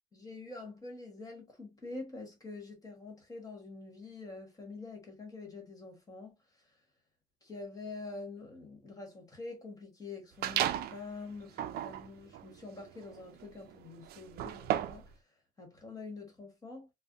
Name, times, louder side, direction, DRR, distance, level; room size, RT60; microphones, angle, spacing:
voice 1, 0.1-6.6 7.4-15.1 15.6-16.9, left 3 dB, 20° left, 1.4 m, -46 dB
sound 1, 10.4-11.0 11.5-15.1, right 11 dB, 65° right, 0.4 m, -35 dB
3.3 x 2.1 x 2.6 m
cardioid pair, 110°, 17 cm